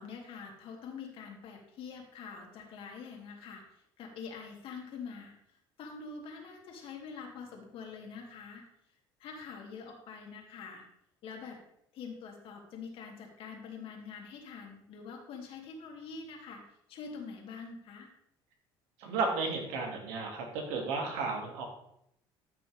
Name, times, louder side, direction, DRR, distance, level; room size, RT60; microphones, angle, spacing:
voice 1, 0.0-5.4 5.8-8.6 9.2-10.8 11.2-11.6 11.9-18.1, left 5 dB, 60° left, 1 dB, 2.4 m, -45 dB
voice 2, 19.0-21.6, right 4 dB, 90° right, 1 dB, 2.4 m, -33 dB
13.0 x 6.1 x 3.5 m, 0.75 s
cardioid pair, 120°, 10 cm